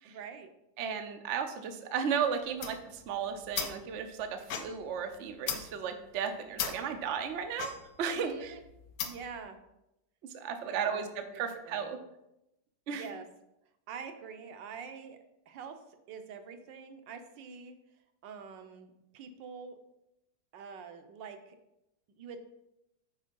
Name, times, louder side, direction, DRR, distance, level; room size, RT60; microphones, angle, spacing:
voice 1, 0.0-0.5 8.1-8.6 9.0-9.6 10.6-11.9 12.9-13.2 13.9-15.2 15.5-15.8 16.1-17.8 18.2-19.8 20.5-21.6 22.2-22.4, right 6 dB, 85° right, 7 dB, 1.4 m, -45 dB
voice 2, 0.8-7.7 8.0-8.6 10.3-12.0 12.9-13.1, right 7 dB, 60° right, 6 dB, 0.8 m, -34 dB
sound 1, 2.4-9.4, left 7 dB, 75° left, 1.4 m, -40 dB
6.4 x 4.4 x 5.3 m, 0.86 s
omnidirectional pair, 1.9 m